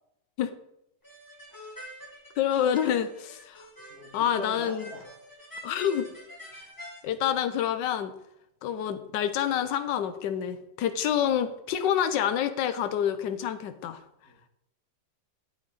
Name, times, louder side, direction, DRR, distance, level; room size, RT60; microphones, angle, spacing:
sound 1, 1.0-7.0, equal, 10° left, 2.0 m, -46 dB
voice 1, 1.5-2.0 3.9-5.2 11.2-11.4 14.2-14.4, right 1 dB, 35° right, 2 dB, 1.8 m, -44 dB
voice 2, 2.4-3.7 4.1-4.9 5.6-6.1 7.0-8.1 8.6-14.0, left 9 dB, 75° left, 10 dB, 1.4 m, -27 dB
9.3 x 8.3 x 4.0 m, 0.82 s
omnidirectional pair, 2.0 m